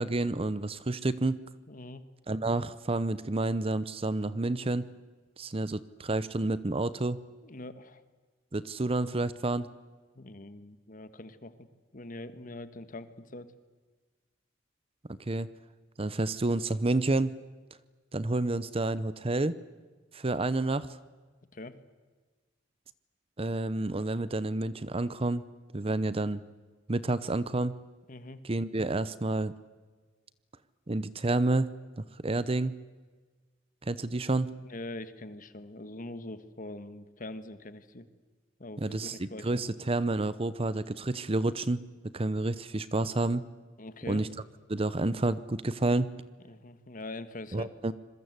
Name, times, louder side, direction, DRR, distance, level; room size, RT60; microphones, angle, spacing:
voice 1, 0.0-1.4 2.3-4.9 5.4-7.2 8.5-9.7 15.3-15.5 16.0-17.3 18.1-19.6 20.1-20.9 23.4-25.4 25.7-26.4 26.9-27.8 28.4-29.5 30.9-31.7 32.0-32.8 33.8-34.5 38.8-41.8 42.1-43.4 44.1-44.3 44.7-46.1 47.5-47.9, right 2 dB, 30° right, 16 dB, 0.7 m, -29 dB
voice 2, 1.7-2.0 7.4-8.0 10.1-11.7 11.9-13.5 21.5-21.7 28.1-28.4 34.6-38.1 38.6-39.8 43.8-44.2 46.5-47.7, left 2 dB, 45° left, 12 dB, 1.5 m, -43 dB
26.5 x 22.0 x 8.1 m, 1.4 s
head